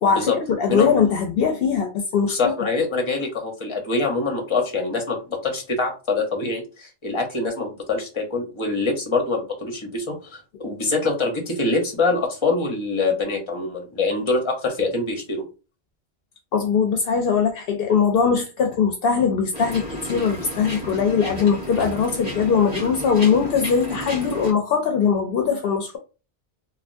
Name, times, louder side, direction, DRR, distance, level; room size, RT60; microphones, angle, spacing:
voice 1, 0.0-2.5 16.5-26.0, left 6 dB, 70° left, 0.7 m, -21 dB
voice 2, 2.3-15.4, left 3 dB, 30° left, 0.9 m, -24 dB
sound 1, 19.5-24.5, right 1 dB, 40° right, 1.5 m, -32 dB
3.4 x 2.3 x 2.5 m
omnidirectional pair, 1.0 m